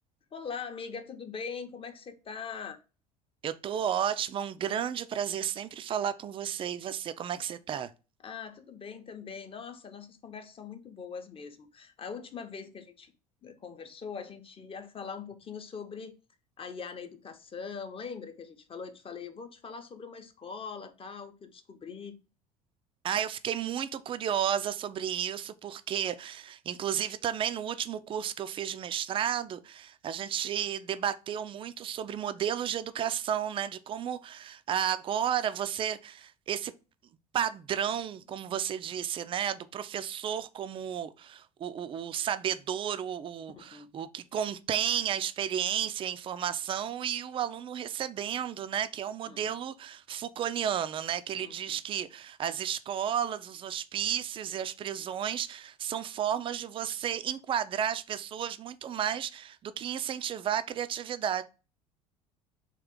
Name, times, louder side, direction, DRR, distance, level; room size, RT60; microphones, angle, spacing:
voice 1, 0.3-2.8 8.2-13.1 13.4-16.1 16.6-22.2 43.7-43.9 49.2-49.6 51.4-51.8, left 6 dB, 30° left, 0.7 m, -42 dB
voice 2, 3.4-7.9 23.0-36.7 37.3-61.4, right 9 dB, 25° right, 0.4 m, -32 dB
3.6 x 2.4 x 3.6 m
hypercardioid pair, 65°, 19 cm